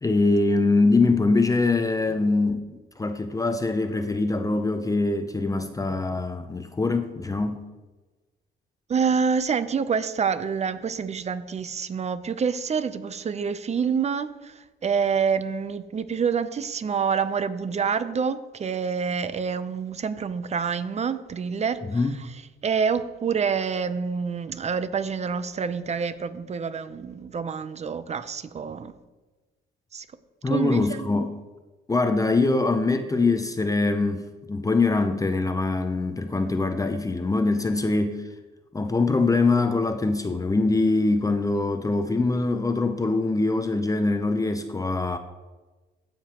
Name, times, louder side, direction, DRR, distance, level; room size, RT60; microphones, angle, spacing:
voice 1, 0.0-7.7 21.9-22.2 30.4-31.3 31.9-38.2 38.7-45.2, left 3 dB, 15° left, 0.5 m, -23 dB
voice 2, 8.9-14.5 14.8-21.8 22.6-28.9 29.9-30.1 30.5-31.1, right 6 dB, 35° right, 0.6 m, -27 dB
15.0 x 5.1 x 2.9 m
cardioid pair, 90°, 20 cm